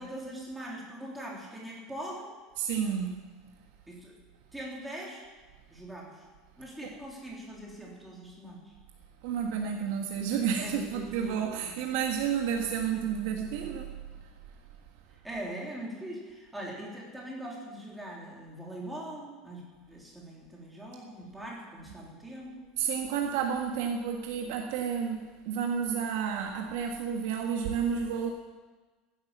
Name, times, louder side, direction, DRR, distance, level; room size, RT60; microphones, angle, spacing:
voice 1, 0.0-2.3 3.9-4.1 4.5-5.2 5.7-6.2 6.6-8.7 10.6-11.8 15.2-19.6 19.9-22.7, right 1 dB, 5° right, -4 dB, 3.2 m, -42 dB
voice 2, 2.6-3.4 9.2-14.0 22.8-28.3, right 7 dB, 65° right, 2 dB, 1.5 m, -31 dB
15.5 x 10.5 x 7.4 m, 1.3 s
cardioid pair, 175°, 0 cm